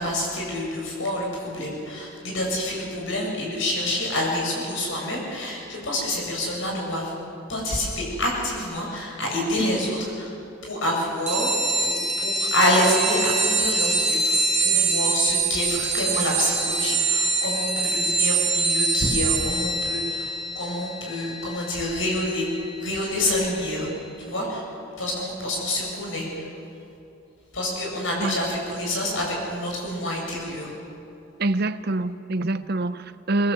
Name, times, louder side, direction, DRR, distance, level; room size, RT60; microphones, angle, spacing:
voice 1, 0.0-7.1 7.5-10.3 10.6-11.5 11.8-22.5 22.8-23.9 24.2-24.6 25.0-26.5 27.5-30.7, left 1 dB, 75° left, -1 dB, 7.5 m, -27 dB
sound 1, 11.3-23.4, right 3 dB, 35° right, 3.3 m, -25 dB
voice 2, 31.4-33.5, right 2 dB, 50° right, 12 dB, 0.8 m, -25 dB
24.0 x 20.0 x 8.0 m, 2.7 s
head